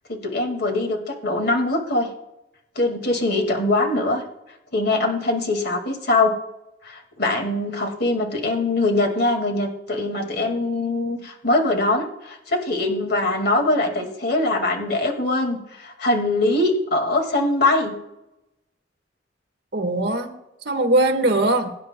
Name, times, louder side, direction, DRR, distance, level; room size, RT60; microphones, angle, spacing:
voice 1, 0.1-2.1 2.8-4.2 4.7-6.3 6.8-17.9, left 2 dB, 60° left, 3 dB, 2.0 m, -22 dB
voice 2, 19.7-21.7, right 2 dB, 60° right, 4 dB, 1.6 m, -21 dB
22.5 x 9.8 x 2.2 m, 0.90 s
head